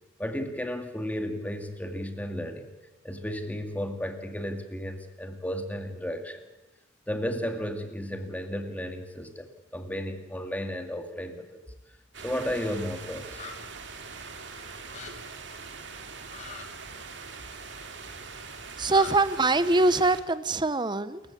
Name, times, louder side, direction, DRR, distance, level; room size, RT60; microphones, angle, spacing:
voice 1, 0.2-2.7 3.0-6.4 7.1-11.6 12.2-13.4, equal, 10° left, 6 dB, 2.2 m, -33 dB
sound 1, 12.1-20.2, right 4 dB, 65° right, 2.5 m, -42 dB
sound 2, 13.3-13.5 14.9-15.1 16.3-16.7 18.9-19.1, left 5 dB, 35° left, 2.4 m, -40 dB
voice 2, 18.8-21.2, right 2 dB, 25° right, 15 dB, 0.9 m, -23 dB
28.0 x 15.0 x 8.7 m, 1.0 s
head